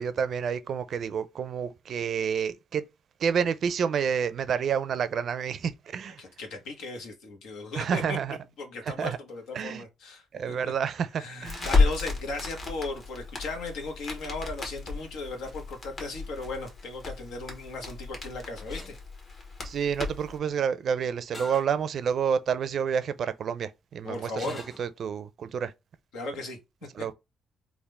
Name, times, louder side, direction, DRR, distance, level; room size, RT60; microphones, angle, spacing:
voice 1, 0.0-2.8 3.2-6.2 7.8-8.4 9.0-9.2 9.5-9.8 10.3-11.7 19.6-24.4 24.8-25.7 27.0-27.1, right 7 dB, 60° right, 0.4 m, -29 dB
voice 2, 6.1-8.2 8.6-10.7 11.2-18.9 24.0-24.6 26.1-26.6 27.0-27.1, left 3 dB, 85° left, 1.1 m, -37 dB
Crackle, 11.4-20.4, left 3 dB, 45° left, 1.3 m, -32 dB
sound 1, 18.7-19.0 21.3-21.7 22.3-22.4 24.4-24.9, left 1 dB, 30° left, 1.5 m, -43 dB
3.6 x 2.4 x 3.3 m
cardioid pair, 90°, 0 cm